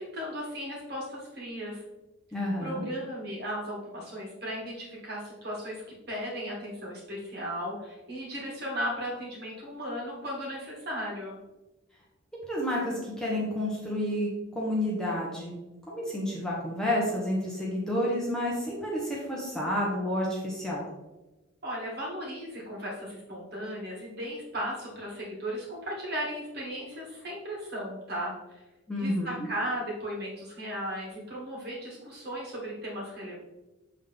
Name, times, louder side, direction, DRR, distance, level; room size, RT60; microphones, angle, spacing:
voice 1, 0.0-1.8 2.6-11.4 21.6-28.6 29.0-33.4, equal, 50° right, -4 dB, 2.0 m, -36 dB
voice 2, 2.3-2.9 12.5-14.3 14.5-15.5 15.9-20.9 28.9-29.5, left 1 dB, 5° left, -5 dB, 1.1 m, -30 dB
7.3 x 3.7 x 3.6 m, 1.1 s
head